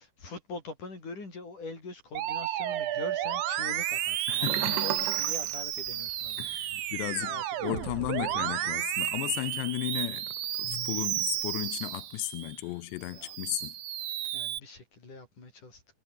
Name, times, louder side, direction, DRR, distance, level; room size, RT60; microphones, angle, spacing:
voice 1, 0.0-6.9 7.1-7.7 8.1-8.7 9.4-9.5 13.1-13.4 13.6-13.7 14.2-15.8, left 3 dB, 45° left, 9.6 m, -44 dB
Musical instrument, 2.2-12.6 13.0-14.6, right 12 dB, 65° right, 2.8 m, -32 dB
voice 2, 4.3-4.8 6.4-7.4 7.6-13.8, left 20 dB, 80° left, 2.8 m, -34 dB
Sink (filling or washing), 4.4-6.4 6.7-7.0 7.4-7.5, right 14 dB, 85° right, 3.7 m, -35 dB
omnidirectional pair, 5.2 m